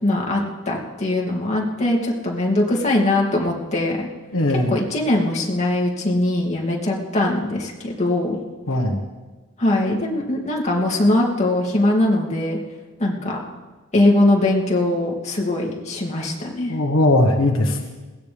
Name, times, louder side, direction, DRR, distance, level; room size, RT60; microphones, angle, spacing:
voice 1, 0.0-4.1 4.7-8.4 9.6-12.6 13.0-13.4 13.9-16.7, left 1 dB, 35° left, -2 dB, 2.8 m, -21 dB
voice 2, 4.3-4.7 8.7-9.0 16.7-17.8, left 1 dB, 80° left, 2 dB, 1.5 m, -19 dB
21.0 x 17.5 x 3.5 m, 1.3 s
head